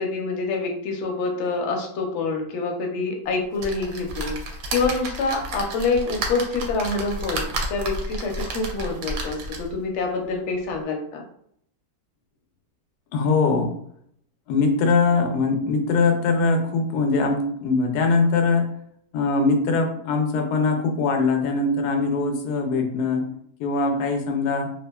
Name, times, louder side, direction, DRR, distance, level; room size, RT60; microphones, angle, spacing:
voice 1, 0.0-4.4 4.7-11.2, left 3 dB, 60° left, 2 dB, 0.8 m, -26 dB
sound 1, 3.6-9.8 10.4-10.5 10.7-10.8, right 2 dB, 70° right, 1.0 m, -31 dB
voice 2, 13.1-13.7 14.5-18.7 19.1-23.3 23.6-24.7, left 4 dB, 85° left, 4 dB, 1.1 m, -22 dB
2.7 x 2.4 x 2.2 m, 0.67 s
omnidirectional pair, 1.6 m